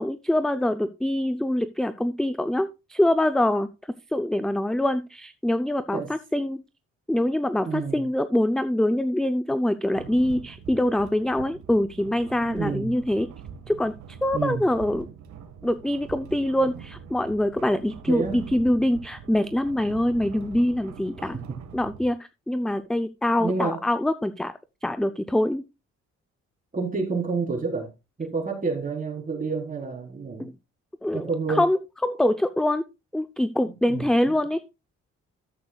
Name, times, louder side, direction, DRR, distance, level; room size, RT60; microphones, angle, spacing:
voice 1, 0.0-3.7 4.1-6.6 7.1-13.3 13.7-15.1 15.6-21.4 21.7-22.2 22.5-25.6 30.4-30.5 31.0-32.8 33.1-34.6, left 1 dB, ahead, 0.5 m, -24 dB
voice 2, 7.6-8.0 12.5-13.0 14.3-14.6 18.1-18.5 21.2-21.6 23.4-23.8 26.7-27.9 28.2-30.5 31.1-31.6 33.6-34.1, right 4 dB, 25° right, 4.1 m, -29 dB
sound 1, 9.9-22.1, right 7 dB, 70° right, 1.6 m, -43 dB
13.0 x 7.9 x 2.3 m
cardioid pair, 90°, 30 cm